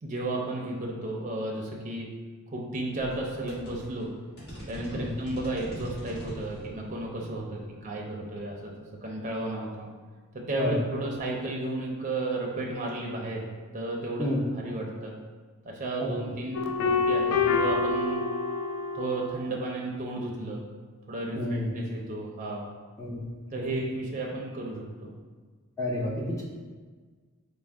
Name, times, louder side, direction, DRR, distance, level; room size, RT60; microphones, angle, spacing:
voice 1, 0.0-2.1 2.5-4.1 4.7-8.7 9.0-9.9 10.3-13.4 13.7-15.1 15.6-18.2 18.9-20.6 21.1-22.6 23.5-25.1, right 2 dB, 35° right, -1 dB, 0.5 m, -33 dB
sound 1, 2.9-9.4, equal, 50° left, 1.4 m, -44 dB
sound 2, 16.5-19.4, left 4 dB, 80° left, 0.4 m, -27 dB
voice 2, 21.4-21.7 23.0-23.2 23.5-23.8 25.8-26.4, left 1 dB, 15° left, -4 dB, 0.5 m, -30 dB
4.3 x 2.1 x 3.4 m, 1.4 s
head